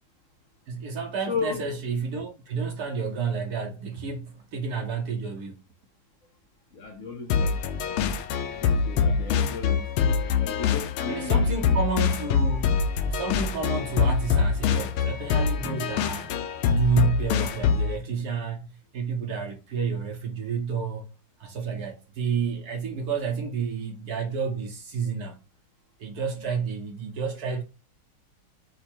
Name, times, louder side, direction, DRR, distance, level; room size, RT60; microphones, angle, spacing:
voice 1, 0.7-5.6 11.1-12.7 13.1-16.4 16.7-18.7 18.9-21.1 21.4-25.4 26.0-27.6, right 5 dB, 65° right, 1.0 m, -30 dB
voice 2, 1.3-1.6 6.7-8.0 8.6-9.9 10.4-11.9 21.5-21.8 26.4-26.5, left 5 dB, 60° left, 0.9 m, -35 dB
sound 1, 7.3-18.0, left 6 dB, 80° left, 1.4 m, -24 dB
5.2 x 2.3 x 4.3 m
omnidirectional pair, 2.2 m